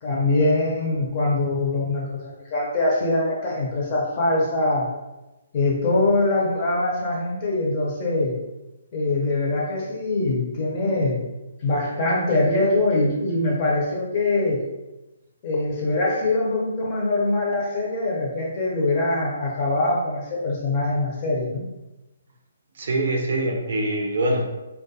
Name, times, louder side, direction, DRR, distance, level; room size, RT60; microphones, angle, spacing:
voice 1, 0.0-4.9 5.5-8.4 8.9-11.2 11.6-14.6 15.4-21.7, left 2 dB, 30° left, -3 dB, 0.6 m, -23 dB
voice 2, 22.8-24.4, right 1 dB, 55° right, 1 dB, 0.5 m, -24 dB
2.3 x 2.2 x 2.7 m, 1.0 s
hypercardioid pair, 165°, 0 cm